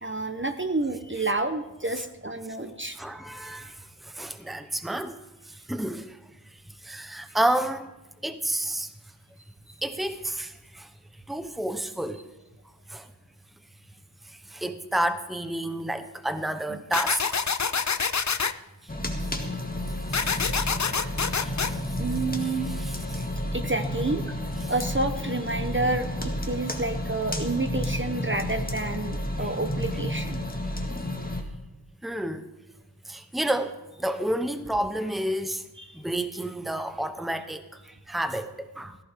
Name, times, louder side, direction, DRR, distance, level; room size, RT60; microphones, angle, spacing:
voice 1, 0.0-3.0 16.7-16.8 22.0-22.7 23.5-24.4 24.7-30.4 35.8-36.0, right 2 dB, 30° right, 0.9 m, -29 dB
voice 2, 3.0-5.2 5.5-6.2 6.8-7.9 8.2-8.9 9.8-10.9 11.3-12.2 12.9-13.1 14.3-17.5 20.1-21.0 21.3-21.8 22.7-23.3 29.4-29.5 30.9-31.1 32.0-32.5 33.1-35.6 35.9-39.0, right 1 dB, ahead, 0.9 m, -31 dB
sound 1, 16.9-18.5 20.1-21.7, left 5 dB, 40° left, 0.6 m, -26 dB
sound 2, 18.9-31.4, left 1 dB, 20° left, 1.9 m, -31 dB
17.5 x 15.0 x 3.7 m
wide cardioid pair, 60°, 42 cm